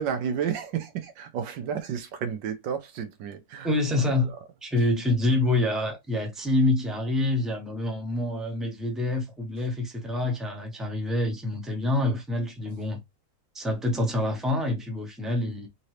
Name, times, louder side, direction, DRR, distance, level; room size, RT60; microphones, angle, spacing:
voice 1, 0.0-3.7 4.0-4.2, right 7 dB, 85° right, 1.4 m, -31 dB
voice 2, 3.6-4.3 4.6-13.0 13.5-15.7, left 2 dB, ahead, 0.4 m, -26 dB
3.8 x 2.8 x 3.2 m
omnidirectional pair, 1.9 m